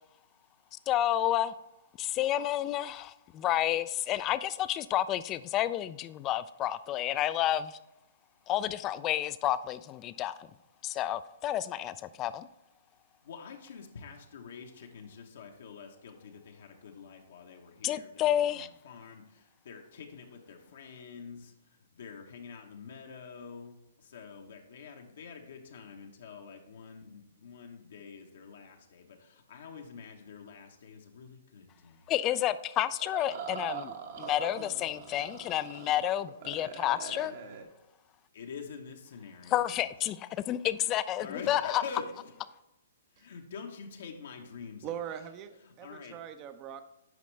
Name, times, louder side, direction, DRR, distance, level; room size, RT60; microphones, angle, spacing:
voice 1, 0.9-1.5 2.0-7.8 8.5-10.5 10.8-12.5 17.8-18.7 32.1-37.4 39.5-41.8, left 12 dB, 25° left, 15 dB, 0.3 m, -30 dB
voice 2, 13.2-32.1 38.3-39.8 41.2-42.3 43.1-44.9 45.7-46.2, left 5 dB, 70° left, 2 dB, 1.0 m, -46 dB
sound 1, 33.0-36.0 36.2-37.6, right 6 dB, 55° right, 1.2 m, -42 dB
voice 3, 44.8-46.8, right 9 dB, 30° right, 10 dB, 0.6 m, -41 dB
9.3 x 5.2 x 3.3 m, 0.90 s
hypercardioid pair, 135°, 0 cm